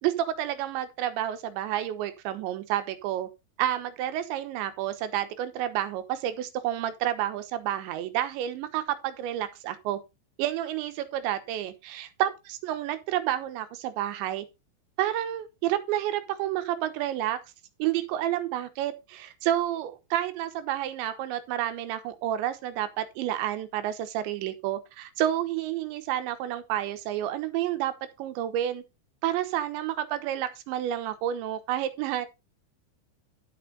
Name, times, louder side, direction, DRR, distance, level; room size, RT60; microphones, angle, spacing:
voice 1, 0.0-3.3 3.6-10.0 10.4-14.5 15.0-17.4 17.8-28.8 29.2-32.3, right 12 dB, 80° right, 3.3 m, -30 dB
11.5 x 7.0 x 4.0 m
omnidirectional pair, 5.3 m